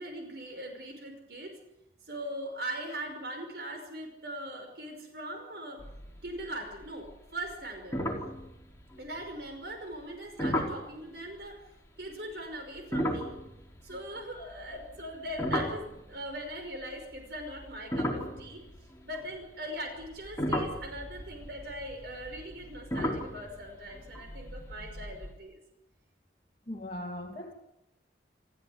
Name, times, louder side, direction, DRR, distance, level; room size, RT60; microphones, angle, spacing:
voice 1, 0.0-1.6 2.1-5.8 6.2-8.0 9.0-11.6 12.0-13.4 13.8-18.6 19.0-25.6, right 1 dB, 60° right, 4 dB, 5.4 m, -40 dB
sound 1, 5.8-6.5 6.7-7.1 7.5-7.6 7.9-9.2 10.4-10.9 12.8-16.4 17.1-19.4 20.0-25.3, equal, 15° left, 4.4 m, -35 dB
voice 2, 26.7-27.5, left 1 dB, 30° left, -2 dB, 2.9 m, -39 dB
27.5 x 15.0 x 9.6 m, 0.87 s
head